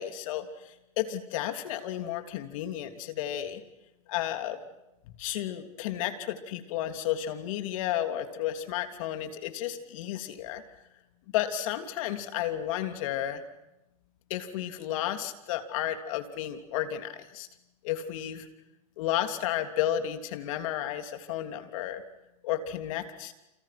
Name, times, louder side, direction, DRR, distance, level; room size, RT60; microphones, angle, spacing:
voice 1, 0.0-3.6 4.1-4.6 5.2-10.6 11.3-13.4 14.3-17.5 17.8-18.5 19.0-22.0 22.4-23.3, left 12 dB, 65° left, 8 dB, 3.1 m, -32 dB
29.0 x 28.5 x 6.0 m, 0.93 s
supercardioid pair, 125°, 18 cm